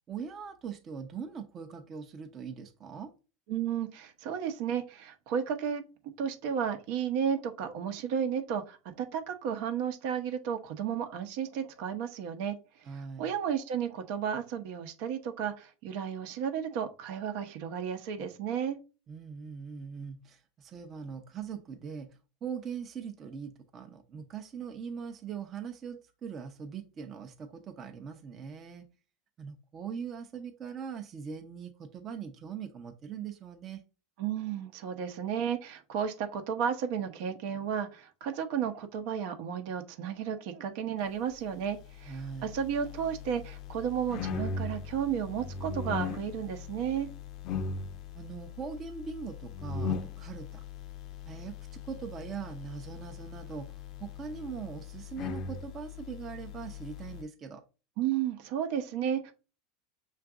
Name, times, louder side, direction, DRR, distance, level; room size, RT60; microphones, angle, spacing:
voice 1, 0.1-3.1 12.8-13.3 19.1-22.1 22.4-28.8 29.4-33.8 42.1-42.5 48.1-50.6 51.2-57.6, right 6 dB, 35° right, 0.7 m, -41 dB
voice 2, 3.5-5.8 6.2-12.6 12.9-18.8 34.2-47.1 58.0-59.3, right 8 dB, 70° right, 0.9 m, -33 dB
sound 1, 41.8-57.2, left 5 dB, 50° left, 0.5 m, -39 dB
5.8 x 2.5 x 3.6 m
supercardioid pair, 120°, 0 cm